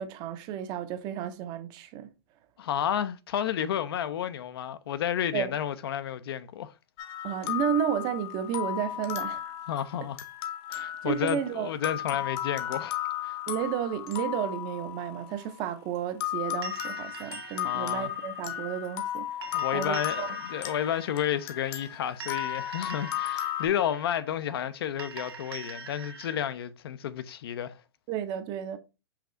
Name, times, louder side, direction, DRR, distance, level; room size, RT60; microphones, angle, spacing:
voice 1, 0.0-2.1 5.3-5.6 7.2-9.5 11.0-11.7 13.5-20.3 28.1-28.8, right 9 dB, 35° right, 0.6 m, -32 dB
voice 2, 2.6-6.7 9.7-10.2 10.7-13.0 13.2-13.4 17.6-18.1 19.5-27.8, left 10 dB, 65° left, 0.5 m, -31 dB
sound 1, 7.0-15.6 16.2-23.7, left 13 dB, 40° left, 0.8 m, -35 dB
sound 2, 16.6-26.4, right 5 dB, 75° right, 1.2 m, -44 dB
5.8 x 2.4 x 3.8 m
hypercardioid pair, 135°, 13 cm